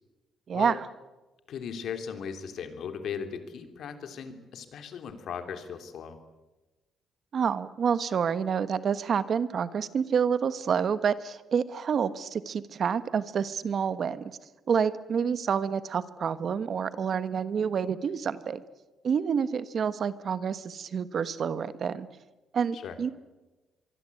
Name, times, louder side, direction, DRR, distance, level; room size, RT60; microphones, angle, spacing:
voice 1, 0.5-0.9 7.3-14.4 14.7-18.6 19.0-22.1 22.5-23.1, right 7 dB, 55° right, 14 dB, 1.3 m, -28 dB
voice 2, 1.5-6.2 22.7-23.0, left 7 dB, 70° left, 7 dB, 3.3 m, -37 dB
24.5 x 24.0 x 8.6 m, 1.1 s
cardioid pair, 90°, 0 cm